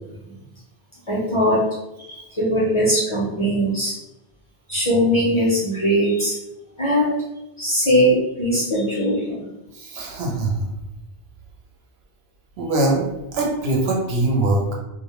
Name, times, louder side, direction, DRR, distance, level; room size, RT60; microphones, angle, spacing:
voice 1, 1.1-1.6 2.1-3.9 4.7-6.3 6.8-7.1 7.6-9.5, equal, 35° left, -7 dB, 0.5 m, -20 dB
voice 2, 9.8-10.7 12.6-14.7, right 2 dB, 75° right, -1 dB, 0.9 m, -22 dB
2.1 x 2.0 x 2.9 m, 0.93 s
omnidirectional pair, 1.1 m